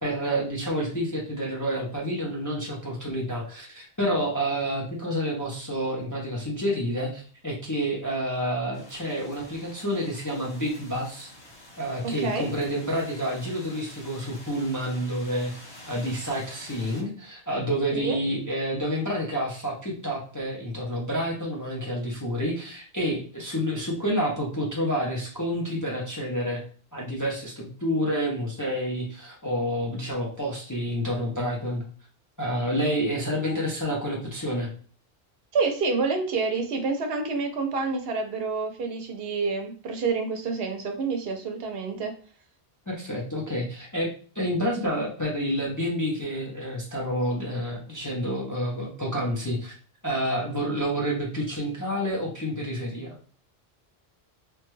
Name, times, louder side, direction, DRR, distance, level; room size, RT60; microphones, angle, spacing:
voice 1, 0.0-11.3 11.8-15.5 15.9-26.6 26.9-31.8 32.4-34.7 42.9-49.8 50.0-53.2, equal, 25° left, -3 dB, 0.4 m, -29 dB
sound 1, 8.7-17.0, left 1 dB, 85° left, 1.6 m, -48 dB
voice 2, 12.0-12.5 17.9-18.2 35.5-42.1, right 4 dB, 70° right, 5 dB, 0.8 m, -28 dB
3.0 x 2.2 x 3.0 m, 0.43 s
omnidirectional pair, 1.1 m